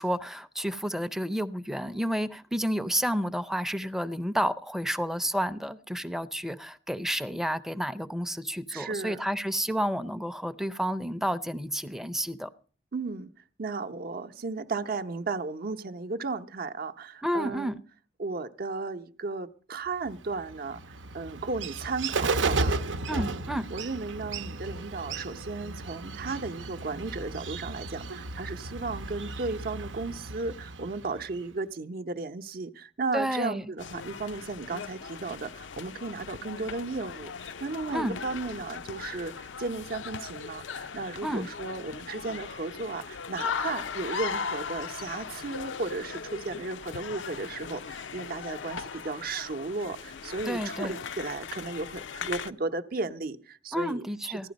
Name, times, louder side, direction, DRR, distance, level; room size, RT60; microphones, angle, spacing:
voice 1, 0.0-12.5 17.2-17.7 23.1-23.7 33.1-33.7 37.9-38.2 41.2-41.5 50.5-51.0 53.7-54.5, equal, ahead, 0.5 m, -30 dB
voice 2, 8.7-9.2 12.9-13.3 13.6-17.8 18.2-23.4 23.7-54.5, right 3 dB, 55° right, 0.7 m, -35 dB
Bird, 20.1-31.5, right 3 dB, 90° right, 0.8 m, -34 dB
sound 1, 33.8-52.5, left 6 dB, 80° left, 0.5 m, -38 dB
15.0 x 11.5 x 5.2 m
head